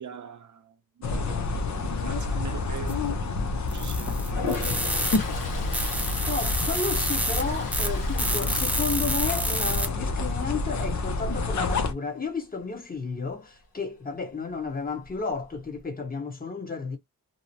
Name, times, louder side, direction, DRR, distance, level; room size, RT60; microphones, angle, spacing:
voice 1, 0.0-4.8 5.5-6.2 8.2-8.5, right 7 dB, 60° right, 0.6 m, -44 dB
sound 1, 1.0-11.9, left 3 dB, 55° left, 0.6 m, -28 dB
sound 2, 2.9-3.0 3.7-5.2 5.7-7.4 7.7-7.9 8.2-9.9, right 1 dB, 5° right, 0.6 m, -29 dB
Toilet flush, 4.2-9.4 9.8-10.2 14.7-14.8 15.0-15.8, left 3 dB, 80° left, 1.4 m, -37 dB
voice 2, 6.3-17.0, left 4 dB, 25° left, 1.0 m, -32 dB
2.8 x 2.0 x 2.7 m
wide cardioid pair, 90°, 34 cm